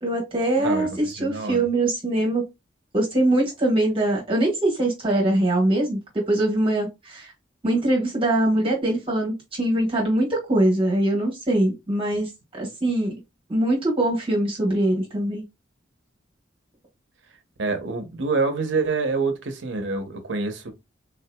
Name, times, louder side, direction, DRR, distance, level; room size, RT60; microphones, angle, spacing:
voice 1, 0.0-2.4 2.9-7.3 7.6-12.3 12.6-13.1 13.5-15.4, right 1 dB, 30° right, 1.3 m, -22 dB
voice 2, 0.6-1.6 17.6-20.7, right 4 dB, 80° right, 0.9 m, -26 dB
3.8 x 2.8 x 2.2 m
head